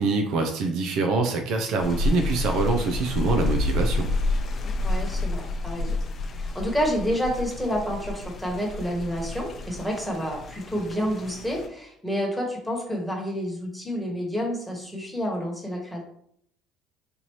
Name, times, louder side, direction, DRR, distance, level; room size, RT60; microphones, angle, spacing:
voice 1, 0.0-4.1, right 3 dB, 65° right, 4 dB, 0.5 m, -25 dB
sound 1, 1.8-11.7, left 2 dB, 35° left, 0.5 m, -29 dB
voice 2, 4.6-6.0 6.4-16.0, equal, 5° right, -1 dB, 1.3 m, -29 dB
4.3 x 2.7 x 3.1 m, 0.66 s
cardioid pair, 125°, 0 cm